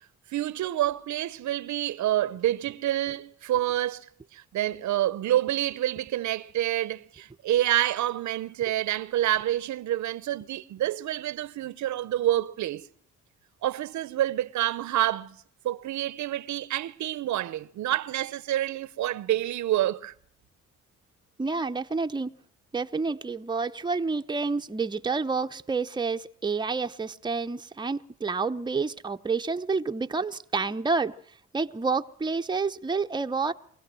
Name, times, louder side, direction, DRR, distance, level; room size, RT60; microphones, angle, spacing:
voice 1, 0.3-12.9 13.6-15.4 15.6-20.1, right 13 dB, 70° right, 0.8 m, -28 dB
voice 2, 21.4-22.3 22.7-31.2 31.5-33.5, right 4 dB, 15° right, 0.8 m, -29 dB
24.0 x 16.5 x 7.6 m
cardioid pair, 90°, 30 cm